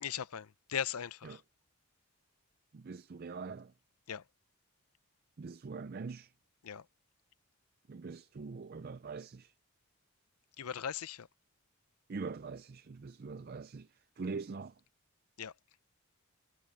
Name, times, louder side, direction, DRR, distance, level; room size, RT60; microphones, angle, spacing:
voice 1, 0.0-1.4 4.1-4.2 6.6-6.8 10.6-11.3 15.4-15.5, left 8 dB, 85° left, 0.6 m, -38 dB
voice 2, 2.7-3.7 5.4-6.3 7.9-9.5 12.1-13.9 14.2-14.7, right 4 dB, 45° right, 0.4 m, -43 dB
head